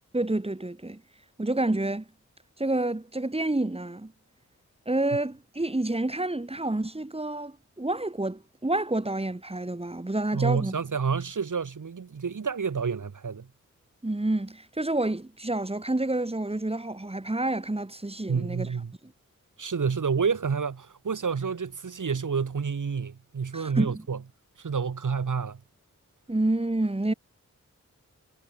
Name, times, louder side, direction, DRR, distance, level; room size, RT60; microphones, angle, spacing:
voice 1, 0.1-1.0 1.4-2.0 2.6-4.1 4.9-10.8 14.0-18.7 23.5-24.0 26.3-27.1, right 2 dB, 20° right, 4.2 m, -28 dB
voice 2, 10.3-13.5 18.3-18.9 19.6-24.2 24.6-25.6, right 5 dB, 80° right, 5.3 m, -29 dB
wide cardioid pair, 90°, 31 cm